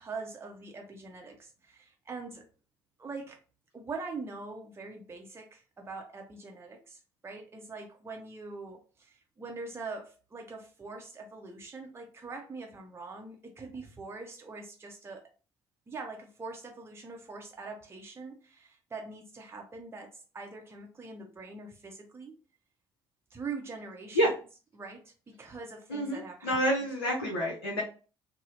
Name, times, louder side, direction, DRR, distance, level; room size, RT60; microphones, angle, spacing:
voice 1, 0.0-2.4 3.0-3.4 3.7-15.2 15.9-22.4 23.3-24.2 24.7-26.9, right 4 dB, 20° right, 1 dB, 0.6 m, -43 dB
voice 2, 25.9-27.8, equal, 80° left, -4 dB, 0.6 m, -28 dB
2.7 x 2.0 x 2.9 m, 0.36 s
figure-of-eight pair, 50°, 13 cm